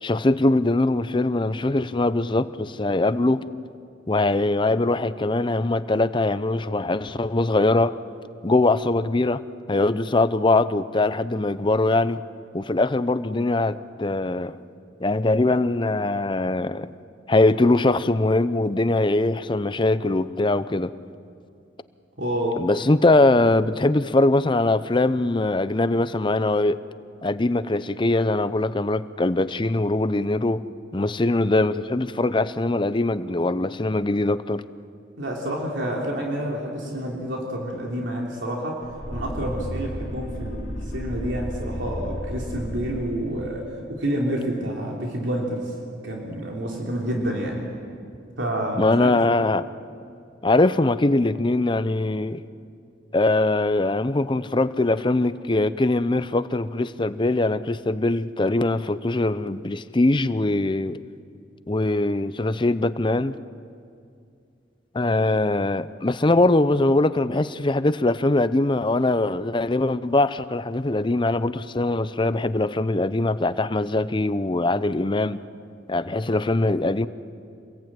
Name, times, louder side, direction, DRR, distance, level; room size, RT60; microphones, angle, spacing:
voice 1, 0.0-3.5 4.1-7.9 8.4-9.4 9.7-12.2 12.5-14.6 15.0-16.9 17.3-20.9 22.6-26.8 27.2-30.6 30.9-34.6 48.8-49.6 50.4-52.4 53.1-61.0 61.7-63.4 64.9-75.4 75.9-77.1, left 2 dB, 25° left, 14 dB, 0.6 m, -22 dB
voice 2, 22.2-22.6 35.2-38.8 39.1-45.7 46.0-47.6 48.4-49.1, right 1 dB, 75° right, -1 dB, 3.4 m, -28 dB
sound 1, 38.8-43.7, equal, 55° left, 3.1 m, -33 dB
27.0 x 21.5 x 8.9 m, 2.4 s
head